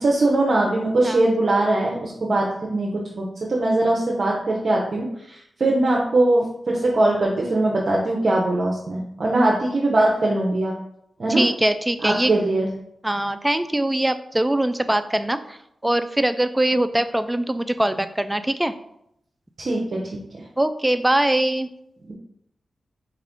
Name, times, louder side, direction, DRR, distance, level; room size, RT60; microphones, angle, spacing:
voice 1, 0.0-10.7 11.2-11.4 12.0-12.7 19.6-20.0 22.1-22.2, right 2 dB, 60° right, -2 dB, 0.6 m, -21 dB
voice 2, 11.4-12.3 13.0-15.6 15.8-18.7 20.6-21.7, right 1 dB, 15° right, 11 dB, 0.3 m, -22 dB
4.4 x 2.4 x 3.5 m, 0.76 s
cardioid pair, 40°, 0 cm